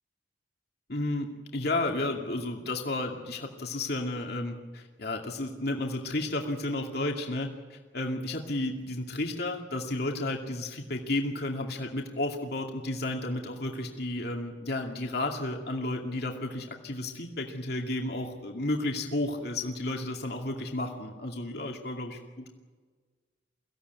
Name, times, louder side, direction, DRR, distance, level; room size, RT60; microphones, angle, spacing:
voice 1, 0.9-1.3 1.5-22.5, left 2 dB, 60° left, 2 dB, 2.5 m, -32 dB
23.5 x 16.5 x 9.5 m, 1.4 s
head